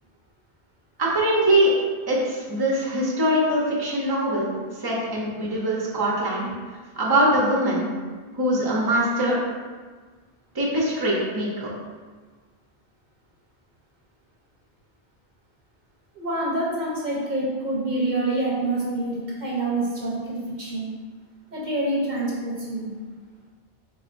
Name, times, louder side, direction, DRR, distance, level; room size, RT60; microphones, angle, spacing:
voice 1, 1.0-1.7 2.1-4.5 4.8-6.5 7.0-7.9 8.4-9.4 10.5-11.7, right 1 dB, 25° right, -4 dB, 0.7 m, -22 dB
voice 2, 16.2-20.9 21.5-22.9, right 2 dB, 50° right, -5 dB, 0.9 m, -26 dB
4.2 x 4.2 x 2.5 m, 1.5 s
omnidirectional pair, 1.1 m